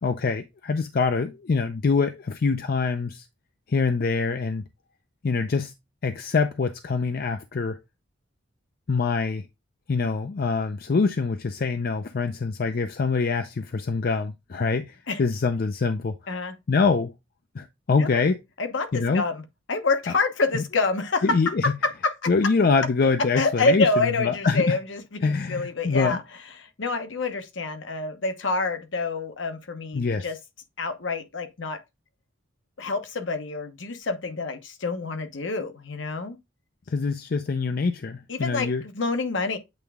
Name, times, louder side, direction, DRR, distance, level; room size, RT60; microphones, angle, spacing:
voice 1, 0.0-3.3 3.7-4.6 5.2-5.7 6.0-7.8 8.9-9.5 9.9-16.2 16.7-17.1 17.5-18.4 18.9-19.2 20.5-20.6 21.2-21.7 22.3-24.8 25.2-26.2 29.9-30.3 36.9-38.8, left 4 dB, 50° left, 0.4 m, -24 dB
voice 2, 18.6-19.4 19.7-21.2 21.6-22.1 23.3-26.2 26.6-30.4 30.8-31.8 32.8-36.4 38.3-39.6, left 3 dB, 70° left, 0.9 m, -27 dB
8.2 x 3.4 x 3.5 m
head